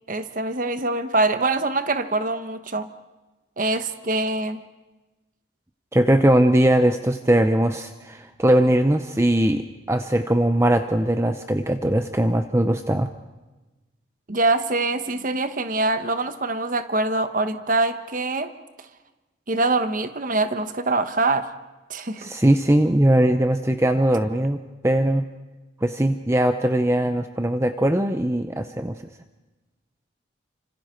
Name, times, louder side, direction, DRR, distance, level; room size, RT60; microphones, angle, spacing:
voice 1, 0.1-2.9 3.6-4.6 14.3-18.5 18.8-18.9 19.5-21.5 21.9-22.3, right 2 dB, 45° right, 9 dB, 1.1 m, -24 dB
voice 2, 5.9-13.1 22.2-25.2 25.8-29.0, right 1 dB, 15° right, 8 dB, 0.7 m, -20 dB
29.0 x 26.0 x 4.5 m, 1.1 s
head